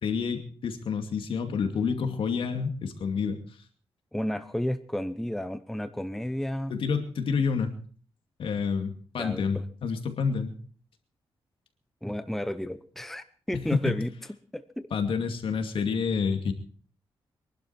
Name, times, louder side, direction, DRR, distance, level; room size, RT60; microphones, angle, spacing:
voice 1, 0.0-3.4 6.7-7.7 8.4-10.5 13.5-14.0 14.9-16.5, left 5 dB, 70° left, 6 dB, 2.4 m, -28 dB
voice 2, 4.1-6.7 9.2-9.4 12.0-14.1 14.5-14.9, equal, 5° left, 11 dB, 0.9 m, -32 dB
23.5 x 11.5 x 4.4 m, 0.43 s
cardioid pair, 95°, 9 cm